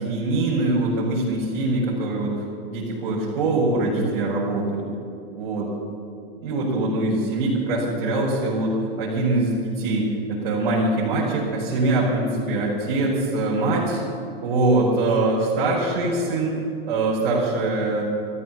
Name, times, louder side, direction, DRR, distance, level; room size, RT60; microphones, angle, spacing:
voice 1, 0.0-2.3 2.7-4.9 5.3-5.7 6.4-14.0 14.4-16.5 16.9-18.0, right 2 dB, 55° right, -7 dB, 5.1 m, -23 dB
14.5 x 13.5 x 7.0 m, 2.5 s
hypercardioid pair, 160°, 30 cm